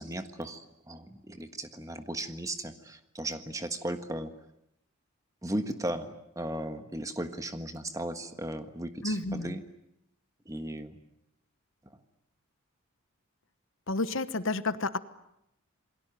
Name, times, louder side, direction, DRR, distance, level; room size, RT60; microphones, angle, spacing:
voice 1, 0.0-4.3 5.4-9.6 10.4-11.0, right 1 dB, 15° right, 8 dB, 1.5 m, -36 dB
voice 2, 9.0-9.6 13.9-15.0, left 2 dB, 65° left, 12 dB, 1.2 m, -30 dB
28.5 x 21.5 x 9.1 m, 0.81 s
head